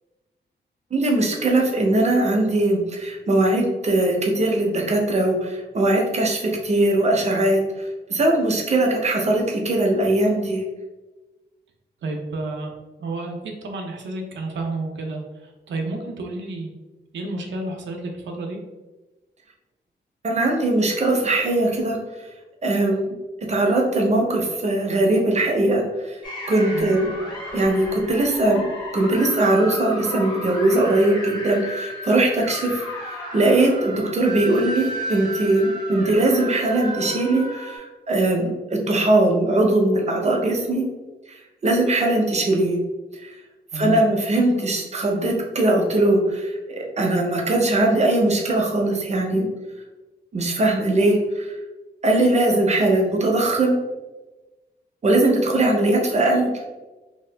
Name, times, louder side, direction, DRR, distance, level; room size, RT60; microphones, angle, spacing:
voice 1, 0.9-10.6 20.2-22.0 22.6-23.1 23.5-26.2 26.5-27.1 27.5-28.6 28.9-32.8 33.3-40.8 41.3-41.4 41.6-42.8 43.2-43.4 43.7-49.5 50.3-51.6 52.0-53.8 55.0-56.6, right 2 dB, 35° right, 1 dB, 0.6 m, -20 dB
voice 2, 12.0-12.7 13.0-16.7 17.1-18.6 26.7-27.0 43.7-44.0, right 2 dB, 85° right, 2 dB, 0.6 m, -30 dB
sound 1, 26.2-37.8, equal, 25° left, 1.0 m, -34 dB
2.8 x 2.3 x 3.2 m, 1.1 s
wide cardioid pair, 125°, 19 cm